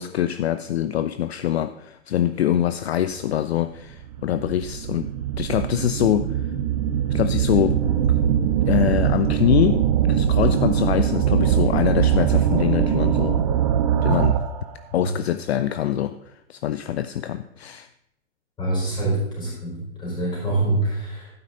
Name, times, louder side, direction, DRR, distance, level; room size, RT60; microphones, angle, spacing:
voice 1, 0.0-5.1 5.4-6.4 7.1-7.8 8.7-13.4 14.0-14.4 14.9-17.9, left 11 dB, 55° left, 11 dB, 0.5 m, -24 dB
sound 1, 3.2-3.3 4.0-14.6, right 9 dB, 30° right, 0.6 m, -21 dB
voice 2, 18.6-21.3, right 2 dB, 10° left, -4 dB, 4.5 m, -25 dB
12.0 x 9.6 x 3.8 m, 0.83 s
hypercardioid pair, 155°, 39 cm